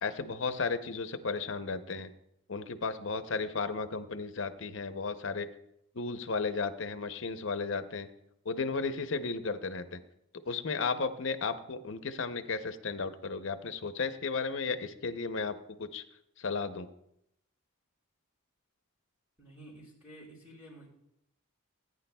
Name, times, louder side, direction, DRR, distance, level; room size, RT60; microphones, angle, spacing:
voice 1, 0.0-2.1 2.5-5.5 5.9-8.1 8.5-10.0 10.5-16.0 16.4-16.9, left 4 dB, 60° left, 10 dB, 0.6 m, -34 dB
voice 2, 19.4-20.9, right 1 dB, 10° right, -5 dB, 4.5 m, -51 dB
18.5 x 9.6 x 2.2 m, 0.79 s
head